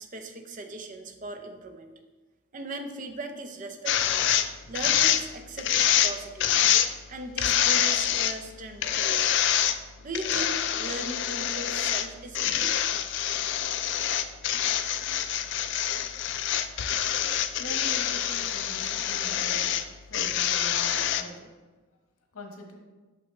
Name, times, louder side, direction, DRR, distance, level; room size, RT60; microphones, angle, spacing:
voice 1, 0.0-1.9 2.5-4.3 4.6-6.6 7.1-9.4 10.0-12.8, right 2 dB, 35° right, 6 dB, 0.6 m, -38 dB
sound 1, 3.9-4.5 4.7-5.2 5.6-6.1 6.4-6.9 7.4-8.3 8.8-9.8 10.1-12.1 12.3-19.8 20.1-21.2, left 10 dB, 55° left, 0.3 m, -26 dB
voice 2, 17.6-19.8 20.1-21.4 22.3-22.7, left 1 dB, 80° left, 2 dB, 1.2 m, -43 dB
6.0 x 5.8 x 3.2 m, 1.3 s
head